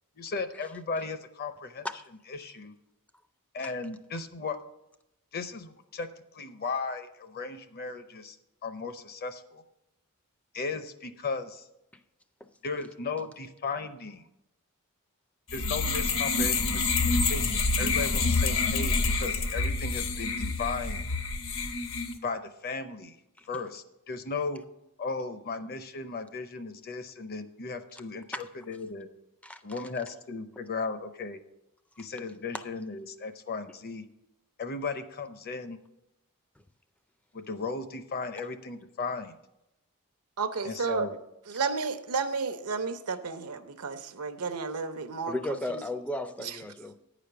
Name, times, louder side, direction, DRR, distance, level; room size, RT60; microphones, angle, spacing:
voice 1, 0.2-1.9 2.3-2.7 3.5-4.6 5.3-6.1 6.3-8.4 8.6-9.6 10.5-11.7 12.6-14.3 15.5-21.0 22.2-23.2 23.5-24.6 25.0-29.1 29.6-31.4 32.0-34.0 34.6-35.8 37.3-39.3 40.6-41.2, left 4 dB, 45° left, 0.6 m, -36 dB
sound 1, 15.5-22.2, left 3 dB, 60° left, 0.9 m, -27 dB
voice 2, 40.4-41.1 41.5-45.3 45.7-45.8 46.4-46.6, right 4 dB, 85° right, 0.7 m, -32 dB
voice 3, 45.3-47.0, left 1 dB, 5° left, 0.3 m, -34 dB
9.3 x 5.1 x 6.8 m
head